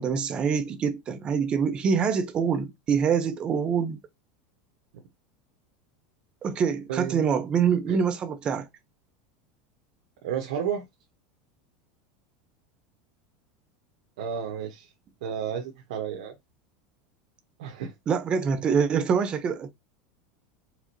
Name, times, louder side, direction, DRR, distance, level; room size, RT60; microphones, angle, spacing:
voice 1, 0.0-4.0 6.4-8.7 18.1-19.7, right 6 dB, 25° right, 0.7 m, -25 dB
voice 2, 6.9-7.2 7.9-8.0 10.2-10.8 14.2-14.9 15.2-16.3 17.6-17.9, right 8 dB, 75° right, 1.1 m, -32 dB
4.9 x 3.4 x 2.7 m
supercardioid pair, 155°, 4 cm